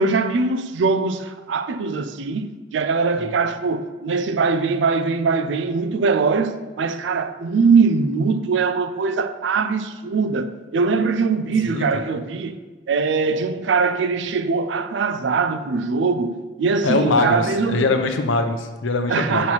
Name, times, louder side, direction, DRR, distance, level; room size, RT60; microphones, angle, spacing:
voice 1, 0.0-12.6 12.9-17.9 19.1-19.5, right 4 dB, 70° right, 0.4 m, -22 dB
voice 2, 16.8-19.5, left 3 dB, 85° left, 0.6 m, -22 dB
6.0 x 3.1 x 5.6 m
head